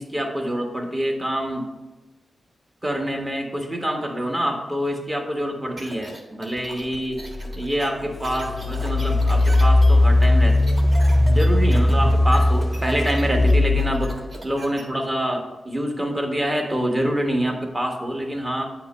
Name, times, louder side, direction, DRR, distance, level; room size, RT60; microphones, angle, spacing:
voice 1, 0.0-1.7 2.8-7.2 7.6-10.6 11.3-14.1 14.4-18.7, equal, 20° right, 2 dB, 1.1 m, -26 dB
sound 1, 5.8-14.8, right 1 dB, 40° right, 1.4 m, -39 dB
Engine, 7.5-7.6 8.3-14.2, left 1 dB, 45° left, 0.3 m, -18 dB
8.4 x 2.9 x 5.3 m, 1.1 s
wide cardioid pair, 95°, 0 cm